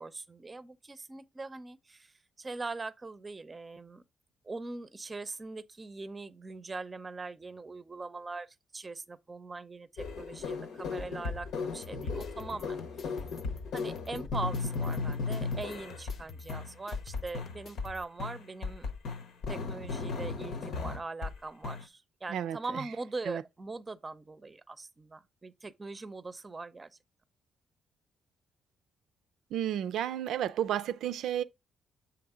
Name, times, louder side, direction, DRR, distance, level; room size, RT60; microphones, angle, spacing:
voice 1, 0.0-2.1 2.4-4.0 4.4-8.5 8.7-12.8 13.7-18.9 19.5-26.9, right 3 dB, 25° right, 0.6 m, -41 dB
sound 1, 10.0-16.2 16.5-17.9 18.2-21.4 21.6-21.9, left 4 dB, 80° left, 1.1 m, -36 dB
sound 2, 11.8-18.0, left 4 dB, 50° left, 0.8 m, -49 dB
voice 2, 22.3-22.8 23.3-23.4 29.5-31.4, right 10 dB, 80° right, 0.4 m, -32 dB
7.1 x 3.0 x 4.9 m
cardioid pair, 90°, 0 cm